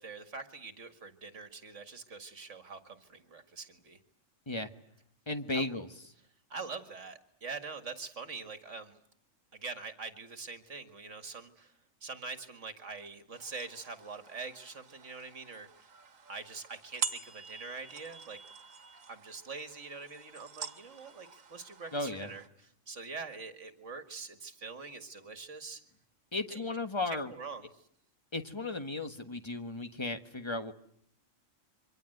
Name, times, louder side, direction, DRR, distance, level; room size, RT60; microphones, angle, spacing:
voice 1, 0.0-4.0 5.5-5.7 6.5-9.0 9.5-11.7 12.0-15.9 16.3-18.4 19.1-25.8 26.5-26.7 27.1-27.8, right 4 dB, 70° right, 9 dB, 2.2 m, -44 dB
voice 2, 5.3-5.9 21.9-22.3 26.3-27.3 28.3-30.7, left 2 dB, 20° left, 7 dB, 1.5 m, -35 dB
sound 1, 13.3-22.5, right 7 dB, 85° right, 1.8 m, -45 dB
27.5 x 24.5 x 7.9 m, 0.67 s
omnidirectional pair, 1.3 m